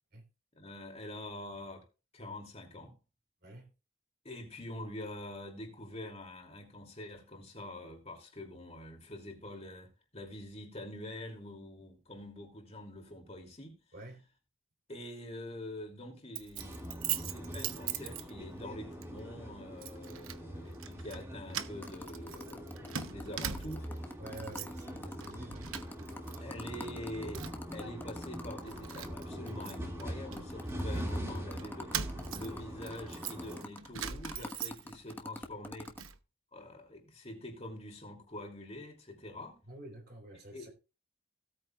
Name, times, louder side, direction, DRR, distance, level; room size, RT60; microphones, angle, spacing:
voice 1, 0.5-1.8 2.1-2.9 4.2-13.8 14.9-23.9 26.4-32.0 32.3-35.9 36.5-39.6 40.5-40.7, left 1 dB, 30° left, 2.7 m, -45 dB
voice 2, 3.4-3.7 13.9-14.3 24.2-25.7 39.7-40.7, right 1 dB, 50° right, 3.1 m, -49 dB
Keys jangling, 16.4-18.7 19.0-19.2 19.8-20.4 20.7-21.2 21.5-24.0 24.3-24.9 25.2-26.4 26.6-27.7 28.2-28.3 28.7-31.0 31.6-35.1 35.5-36.2, right 9 dB, 80° right, 0.9 m, -41 dB
sound 1, 16.6-33.6, equal, 15° right, 2.2 m, -43 dB
sound 2, 21.8-29.8 30.1-30.2 30.4-36.0, left 1 dB, 10° left, 1.2 m, -45 dB
17.0 x 8.8 x 2.4 m
head